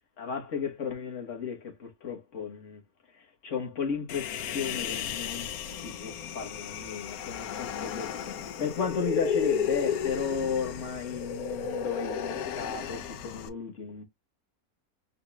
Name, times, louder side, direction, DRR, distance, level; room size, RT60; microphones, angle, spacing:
voice 1, 0.2-2.8 3.1-5.5 6.0-8.2 8.6-14.0, left 6 dB, 55° left, 1.6 m, -34 dB
Human voice, 4.1-13.5, left 7 dB, 85° left, 1.2 m, -33 dB
5.1 x 4.1 x 2.4 m
omnidirectional pair, 1.5 m